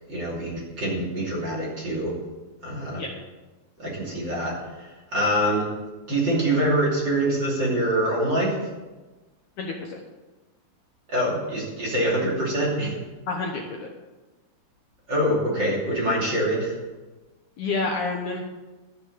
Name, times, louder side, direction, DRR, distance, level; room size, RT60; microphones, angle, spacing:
voice 1, 0.1-2.1 2.6-3.0 3.8-5.7 6.1-8.5 11.1-13.0 15.1-16.7, right 1 dB, 30° right, -5 dB, 2.7 m, -25 dB
voice 2, 9.6-10.0 13.3-13.9 17.6-18.4, left 3 dB, 75° left, 0 dB, 1.8 m, -29 dB
12.0 x 8.2 x 6.8 m, 1.2 s
omnidirectional pair, 5.1 m